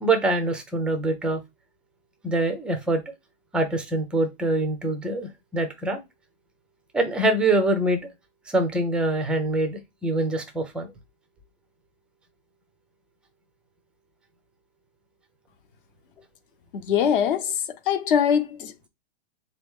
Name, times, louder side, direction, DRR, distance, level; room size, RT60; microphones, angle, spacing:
voice 1, 0.0-1.4 2.2-3.0 3.5-6.0 6.9-8.1 8.5-10.9, right 2 dB, 5° right, 0.4 m, -24 dB
voice 2, 16.7-17.5 17.9-18.9, left 8 dB, 55° left, 0.9 m, -22 dB
4.0 x 3.0 x 3.6 m
hypercardioid pair, 140°, 32 cm